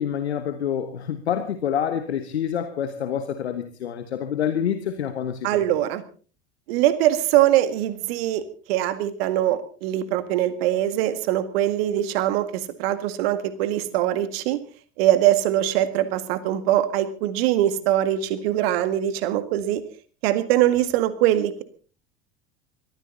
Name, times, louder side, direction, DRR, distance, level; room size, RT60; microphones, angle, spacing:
voice 1, 0.0-5.6, left 9 dB, 80° left, 9 dB, 1.4 m, -27 dB
voice 2, 5.4-6.0 6.7-8.4 8.7-14.6 15.0-19.8 20.2-21.6, right 13 dB, 65° right, 13 dB, 1.9 m, -22 dB
21.5 x 14.5 x 4.0 m, 0.38 s
figure-of-eight pair, 70°, 33 cm